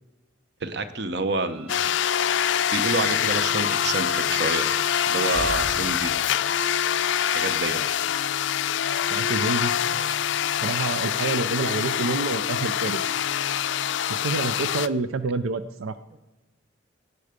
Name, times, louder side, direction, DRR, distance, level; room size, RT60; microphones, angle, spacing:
voice 1, 0.6-1.7 2.7-4.6 5.1-6.1 7.3-7.8 16.1-16.2, right 3 dB, 55° right, 11 dB, 0.9 m, -28 dB
Bowed string instrument, 1.3-6.2, right 2 dB, 30° right, 3.0 m, -49 dB
sound 1, 1.7-14.9, left 9 dB, 65° left, 0.4 m, -25 dB
sound 2, 5.2-6.8, equal, 10° right, 0.3 m, -38 dB
voice 2, 9.1-9.8 10.6-13.0 14.1-16.0, right 3 dB, 90° right, 12 dB, 0.5 m, -28 dB
17.5 x 7.8 x 5.1 m, 1.1 s
head